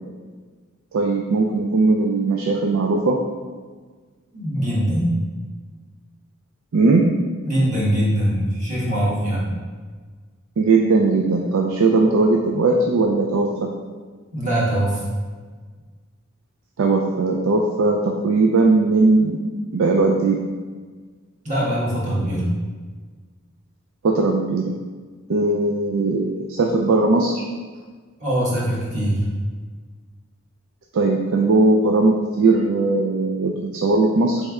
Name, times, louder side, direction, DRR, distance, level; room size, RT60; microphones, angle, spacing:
voice 1, 0.9-3.2 6.7-7.0 10.6-13.7 16.8-19.4 19.7-20.4 24.0-24.7 25.3-27.5 30.9-34.4, right 3 dB, 70° right, 1 dB, 0.4 m, -19 dB
voice 2, 4.3-5.1 7.4-9.5 14.3-15.1 21.4-22.5 28.2-29.2, equal, 35° right, -7 dB, 1.3 m, -22 dB
4.1 x 3.3 x 3.5 m, 1.5 s
head